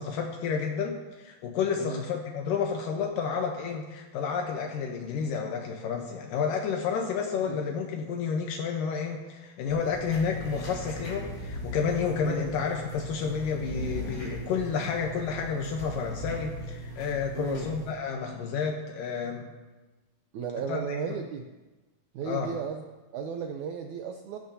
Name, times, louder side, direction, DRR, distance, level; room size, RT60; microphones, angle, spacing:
voice 1, 0.0-19.5 20.7-21.0 22.2-22.6, left 6 dB, 75° left, 2 dB, 2.4 m, -30 dB
sound 1, 9.7-17.9, equal, 30° left, 4.1 m, -39 dB
voice 2, 17.3-17.7 20.3-21.4 22.1-24.4, right 6 dB, 80° right, 4 dB, 1.7 m, -35 dB
16.5 x 14.5 x 2.8 m, 1.2 s
omnidirectional pair, 4.2 m